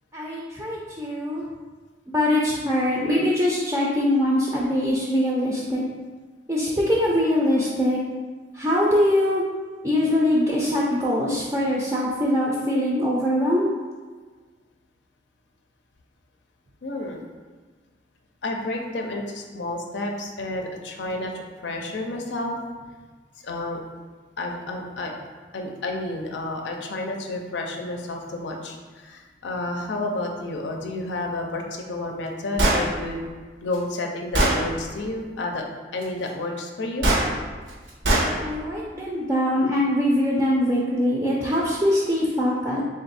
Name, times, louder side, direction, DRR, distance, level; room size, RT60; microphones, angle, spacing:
voice 1, 0.1-1.4 2.1-5.8 6.5-8.0 8.5-9.4 9.8-13.7 38.4-42.8, left 1 dB, 15° right, -5 dB, 0.4 m, -22 dB
voice 2, 16.8-17.2 18.4-22.6 23.4-23.8 24.4-25.1 25.5-28.8 29.0-33.2 33.6-35.6 35.9-37.1, left 2 dB, 85° left, 2 dB, 0.5 m, -30 dB
Gunshot gunfire, 32.6-32.8 33.7-33.8 34.3-34.6 37.0-37.2 38.0-38.3, right 1 dB, 85° right, 0.9 m, -19 dB
3.4 x 2.5 x 4.0 m, 1.4 s
head